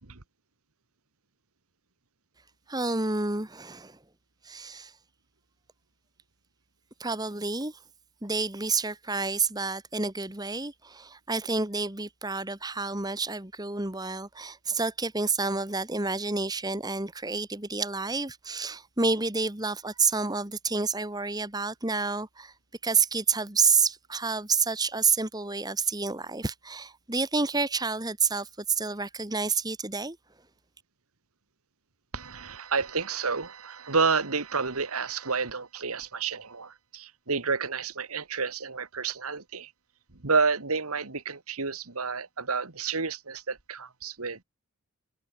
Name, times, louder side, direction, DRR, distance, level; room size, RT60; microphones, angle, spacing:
voice 1, 2.7-4.0 4.4-4.9 7.0-7.8 8.2-22.5 22.8-30.2, right 4 dB, 15° right, 1.7 m, -29 dB
voice 2, 32.1-39.7 40.1-44.4, right 4 dB, 80° right, 1.9 m, -30 dB
head